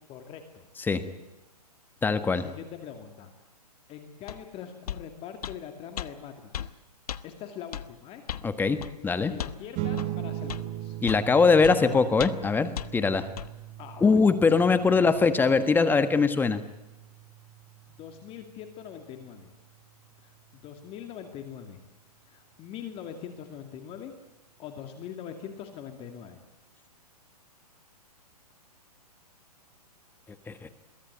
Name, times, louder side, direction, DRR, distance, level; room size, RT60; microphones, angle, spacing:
voice 1, 0.1-0.7 2.3-3.3 3.9-6.7 7.2-8.2 9.1-11.0 11.7-12.1 13.8-14.2 14.9-15.0 18.0-19.5 20.2-21.8 22.3-24.1 24.6-26.4, left 8 dB, 30° left, 6 dB, 2.4 m, -42 dB
voice 2, 2.0-2.4 8.4-9.3 11.0-13.3 14.0-16.6 30.5-30.7, left 4 dB, 10° left, 11 dB, 1.5 m, -22 dB
sound 1, 4.3-4.4 4.9-5.0 5.4-5.6 6.0-6.1 6.5-6.7 7.1-7.2 7.7-7.9 8.3-8.5 8.8-8.9 9.4-9.6 10.0-10.1 10.5-10.6 11.1-11.3 11.6-11.8 12.2-12.5 12.8-12.9 13.4-13.5, left 10 dB, 70° left, 1.2 m, -35 dB
sound 2, 9.7-20.5, right 13 dB, 30° right, 1.1 m, -40 dB
23.0 x 16.0 x 9.3 m, 1.0 s
hypercardioid pair, 130°, 20 cm